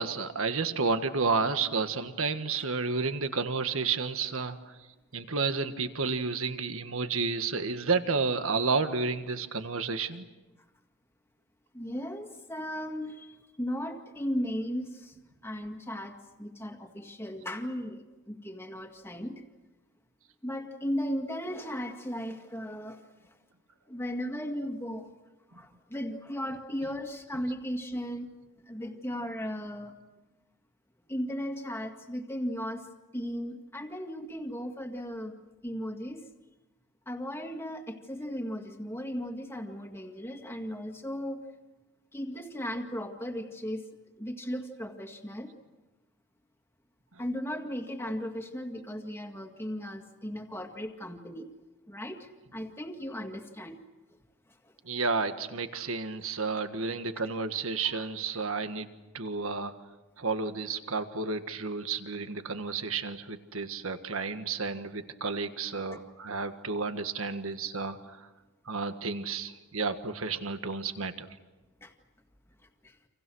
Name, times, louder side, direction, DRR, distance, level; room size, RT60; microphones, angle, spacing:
voice 1, 0.0-4.8 5.1-10.2 26.8-26.9 27.4-27.5 54.8-58.9 59.1-59.7 60.2-68.3 68.6-71.3, right 4 dB, 65° right, 9 dB, 1.6 m, -31 dB
voice 2, 11.7-15.1 15.4-19.4 20.4-23.0 23.9-25.1 25.5-28.3 28.7-29.9 31.1-32.9 33.1-35.3 35.6-36.2 37.1-41.4 42.1-43.8 44.2-45.5 47.2-51.5 51.9-53.8 55.8-55.9 65.9-66.0 71.8-71.9 72.8-72.9, equal, 10° left, 4 dB, 2.0 m, -36 dB
30.0 x 27.0 x 6.3 m, 1.1 s
head